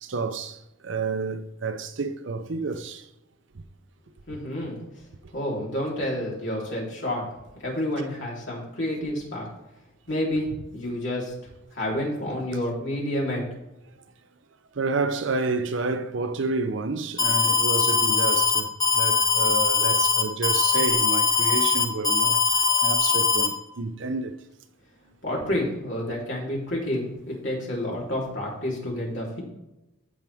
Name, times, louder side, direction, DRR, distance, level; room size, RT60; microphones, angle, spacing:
voice 1, 0.0-3.1 14.7-24.4, right 3 dB, 60° right, 0.6 m, -29 dB
voice 2, 4.3-4.8 5.3-7.2 7.6-9.5 10.1-11.3 11.7-13.4 25.2-29.4, left 1 dB, 60° left, 3.6 m, -29 dB
Alarm, 17.2-23.5, left 5 dB, 20° left, 1.1 m, -21 dB
15.0 x 5.8 x 3.5 m
head